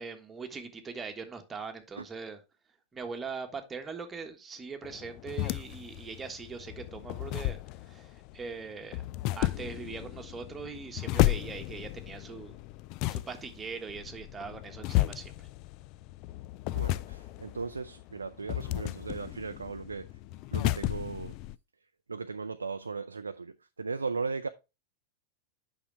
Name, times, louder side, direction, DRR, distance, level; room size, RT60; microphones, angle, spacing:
voice 1, 0.0-2.4 2.9-7.6 7.8-9.0 9.3-12.6 13.1-15.5, right 5 dB, 15° right, 1.5 m, -41 dB
sound 1, 4.8-21.5, left 17 dB, 40° left, 0.4 m, -33 dB
voice 2, 16.7-20.1 20.5-21.3 22.1-24.5, right 4 dB, 75° right, 0.4 m, -37 dB
8.6 x 6.0 x 3.3 m
figure-of-eight pair, 90°, 0 cm